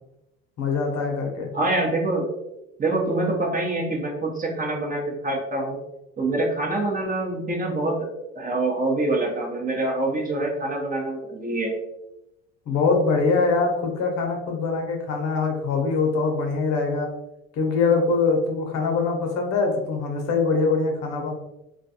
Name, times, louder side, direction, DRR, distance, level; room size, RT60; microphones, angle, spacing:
voice 1, 0.6-1.5 12.7-17.1 17.6-21.3, left 4 dB, 60° left, 2 dB, 0.8 m, -23 dB
voice 2, 1.5-2.3 2.8-5.8 6.2-8.1 8.3-11.7, right 2 dB, 25° right, 0 dB, 0.7 m, -25 dB
2.3 x 2.2 x 2.7 m, 0.89 s
supercardioid pair, 80°, 30 cm